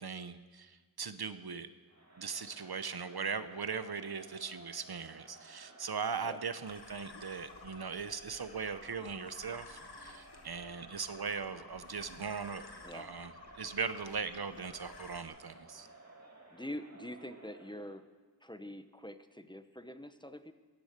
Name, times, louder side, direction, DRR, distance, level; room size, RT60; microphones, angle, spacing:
voice 1, 0.0-1.7 2.2-12.7 12.9-15.9, right 5 dB, 65° right, 12 dB, 0.8 m, -39 dB
Crowd, 1.9-18.0, right 2 dB, 40° right, 2.5 m, -56 dB
sound 1, 6.7-15.2, left 3 dB, 75° left, 1.3 m, -53 dB
voice 2, 16.5-18.0 18.4-20.5, left 1 dB, 10° left, 10 dB, 0.8 m, -45 dB
17.0 x 11.0 x 6.7 m, 1.4 s
wide cardioid pair, 50°, 40 cm